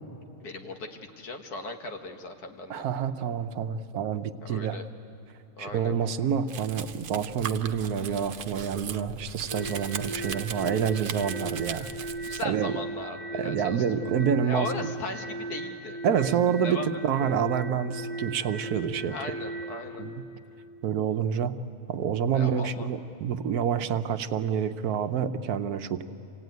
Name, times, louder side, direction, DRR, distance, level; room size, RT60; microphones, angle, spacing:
voice 1, 0.4-2.8 4.4-4.9 5.6-5.9 12.2-16.3 16.6-17.0 19.1-20.0 22.3-22.9, left 2 dB, 80° left, 5 dB, 1.9 m, -38 dB
voice 2, 2.7-4.8 5.6-12.1 12.4-12.7 13.4-14.9 16.0-16.8 17.0-19.1 20.0-20.1 20.8-21.5 21.9-26.0, right 8 dB, 75° right, 9 dB, 1.3 m, -28 dB
Domestic sounds home sounds, 6.5-12.4, right 7 dB, 60° right, 0.5 m, -39 dB
sound 1, 9.5-19.8, right 2 dB, 45° left, 4.3 m, -37 dB
26.5 x 17.0 x 9.4 m, 2.9 s
omnidirectional pair, 1.6 m